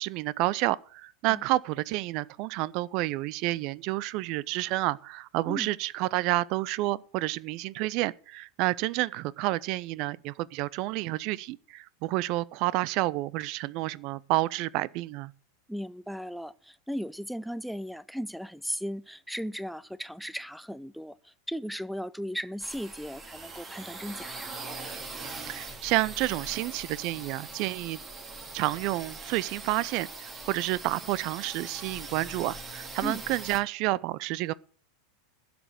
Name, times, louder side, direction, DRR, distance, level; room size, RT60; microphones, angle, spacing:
voice 1, 0.0-15.3 25.4-28.0 28.5-34.5, right 18 dB, 50° right, 0.5 m, -30 dB
voice 2, 15.7-24.5 33.0-33.2, equal, ahead, 0.5 m, -36 dB
sound 1, 22.6-33.6, right 3 dB, 25° right, 2.9 m, -42 dB
12.0 x 6.9 x 7.7 m
figure-of-eight pair, 90°, 0 cm